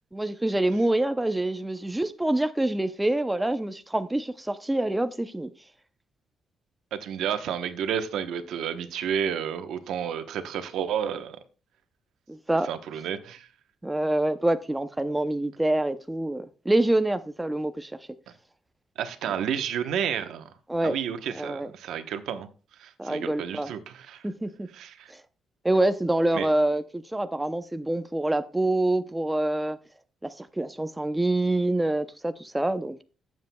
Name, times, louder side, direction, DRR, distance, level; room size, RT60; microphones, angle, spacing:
voice 1, 0.1-5.5 12.3-12.7 13.8-17.9 20.7-21.0 21.3-21.7 23.0-23.7 24.2-24.7 25.1-25.2 25.6-29.8 30.2-33.0, right 1 dB, 10° right, 0.6 m, -26 dB
voice 2, 6.9-11.4 12.6-13.5 19.0-20.5 20.8-24.3 24.7-25.1 26.3-26.5, right 8 dB, 90° right, 0.9 m, -31 dB
15.0 x 7.6 x 2.3 m
cardioid pair, 120°, 0 cm